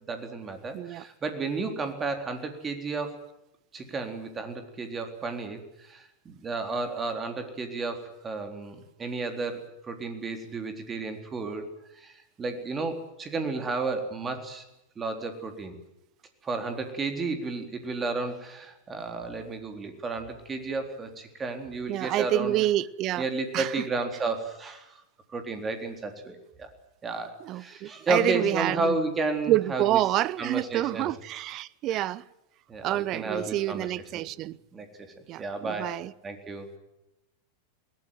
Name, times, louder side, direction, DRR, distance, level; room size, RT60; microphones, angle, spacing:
voice 1, 0.1-3.2 3.7-11.6 11.9-12.1 12.4-14.6 15.0-15.8 16.4-22.6 23.2-25.0 25.3-26.7 27.0-30.0 30.4-31.1 31.9-32.1 32.7-33.9 34.1-36.0 36.2-36.8, right 3 dB, 20° right, 3.8 m, -32 dB
voice 2, 0.7-1.0 21.9-23.3 23.5-23.8 27.4-29.0 29.5-32.2 32.8-34.6 35.3-36.1, right 14 dB, 35° right, 0.7 m, -28 dB
21.0 x 18.5 x 9.2 m
figure-of-eight pair, 90°, 0 cm